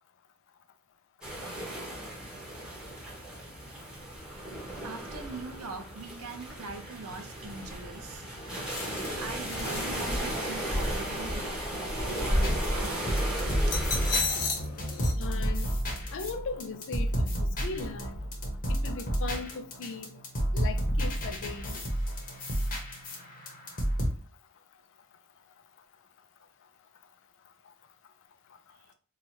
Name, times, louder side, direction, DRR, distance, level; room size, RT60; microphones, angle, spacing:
sound 1, 1.2-14.2, equal, 5° right, 1.0 m, -34 dB
voice 1, 4.8-8.3 9.2-11.5 12.1-12.9, right 4 dB, 75° right, 0.6 m, -42 dB
sound 2, 8.7-15.1, left 4 dB, 85° left, 0.9 m, -37 dB
sound 3, 12.4-24.1, equal, 40° left, 1.0 m, -31 dB
voice 2, 15.2-15.7 16.1-18.2 18.7-20.2 20.5-21.8, left 4 dB, 60° left, 0.5 m, -38 dB
3.0 x 2.4 x 4.2 m
head